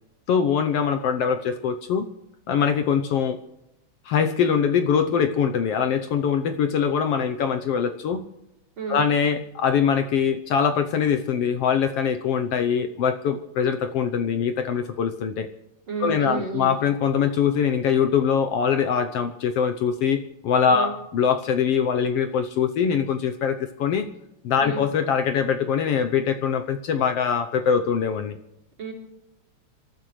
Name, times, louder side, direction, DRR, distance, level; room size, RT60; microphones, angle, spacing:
voice 1, 0.3-2.1 2.5-3.4 4.1-8.2 8.9-15.5 16.0-24.1 24.4-28.4, left 7 dB, 65° left, 7 dB, 1.6 m, -23 dB
voice 2, 15.9-16.8 20.7-20.9 24.6-24.8 28.8-28.9, right 4 dB, 40° right, 0 dB, 4.4 m, -31 dB
27.0 x 14.0 x 3.2 m, 0.88 s
omnidirectional pair, 3.4 m